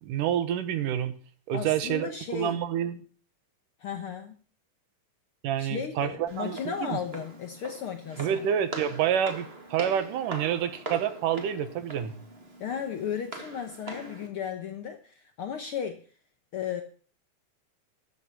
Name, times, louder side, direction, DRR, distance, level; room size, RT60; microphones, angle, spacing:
voice 1, 0.0-1.1 1.5-3.0 5.4-7.0 8.2-12.1, right 9 dB, 90° right, 11 dB, 2.8 m, -28 dB
voice 2, 1.5-2.6 3.8-4.4 5.6-8.5 12.6-16.0 16.5-16.8, left 8 dB, 70° left, 6 dB, 1.3 m, -35 dB
Walk footsteps, 6.3-14.3, right 2 dB, 25° right, 1.5 m, -42 dB
12.0 x 7.6 x 8.1 m, 0.43 s
omnidirectional pair, 3.7 m